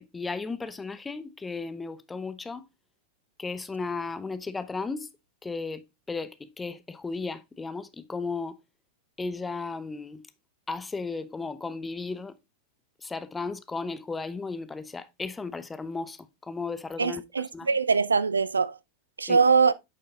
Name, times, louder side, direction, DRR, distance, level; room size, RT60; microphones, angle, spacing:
voice 1, 0.0-2.7 3.4-5.1 5.4-5.8 6.1-8.6 9.2-10.2 10.7-12.3 13.0-17.2 17.5-17.7 19.3-19.4, left 4 dB, 10° left, 0.6 m, -35 dB
voice 2, 17.0-18.7 19.2-19.7, right 5 dB, 75° right, 0.4 m, -22 dB
9.1 x 6.5 x 2.3 m
figure-of-eight pair, 90°, 0 cm